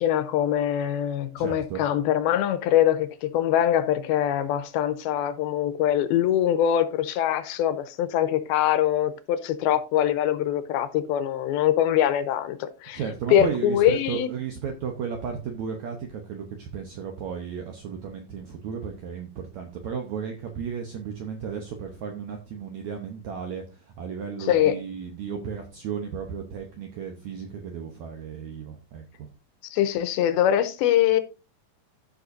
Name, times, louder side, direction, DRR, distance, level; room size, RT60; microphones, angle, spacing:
voice 1, 0.0-13.0 13.3-14.3 24.4-24.8 29.7-31.2, left 11 dB, 80° left, 2.5 m, -23 dB
voice 2, 1.4-1.8 12.9-29.3, right 7 dB, 75° right, 1.7 m, -34 dB
14.5 x 5.6 x 2.6 m
omnidirectional pair, 4.5 m